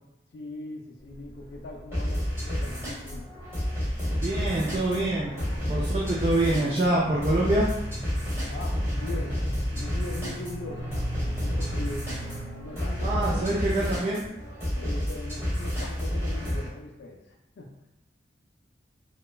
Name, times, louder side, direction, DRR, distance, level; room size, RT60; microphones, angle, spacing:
voice 1, 0.3-3.3 8.5-11.0 11.4-12.2 12.6-13.5 14.8-17.8, left 2 dB, 70° left, 1 dB, 0.3 m, -40 dB
sound 1, 1.0-13.3, right 1 dB, 15° left, 0.7 m, -43 dB
sound 2, 1.9-16.7, equal, 15° right, 1.0 m, -30 dB
sound 3, 4.0-12.7, equal, 90° right, 0.8 m, -44 dB
voice 2, 4.2-5.4 5.7-7.8 13.0-14.3, right 1 dB, 35° right, -5 dB, 0.3 m, -25 dB
2.9 x 2.2 x 2.3 m, 0.88 s
head